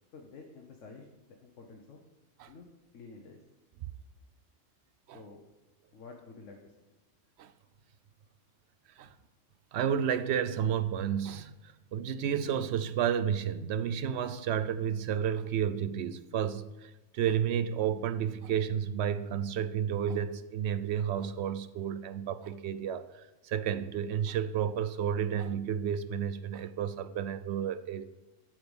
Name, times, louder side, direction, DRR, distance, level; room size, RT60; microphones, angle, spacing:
voice 1, 0.1-2.0 2.5-2.6 2.9-3.4 5.1-5.4 5.9-6.8, left 4 dB, 80° left, 2 dB, 1.3 m, -50 dB
voice 2, 9.7-28.1, right 8 dB, 65° right, 13 dB, 0.8 m, -31 dB
9.0 x 6.5 x 5.3 m, 1.0 s
omnidirectional pair, 1.3 m